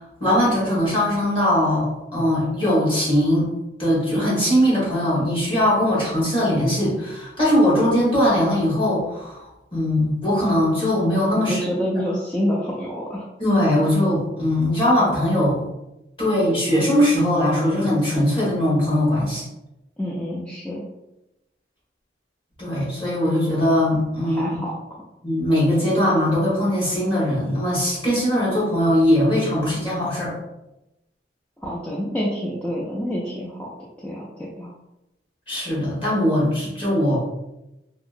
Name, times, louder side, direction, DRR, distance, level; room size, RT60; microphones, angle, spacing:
voice 1, 0.2-3.5 3.8-11.6 13.4-15.6 16.2-19.4 22.6-24.5 25.2-30.3 35.5-37.2, left 1 dB, 30° left, -7 dB, 1.3 m, -20 dB
voice 2, 11.3-13.3 20.0-20.8 24.2-24.7 31.6-33.7 34.0-34.7, equal, 5° left, -5 dB, 0.3 m, -27 dB
2.8 x 2.7 x 2.5 m, 0.93 s
head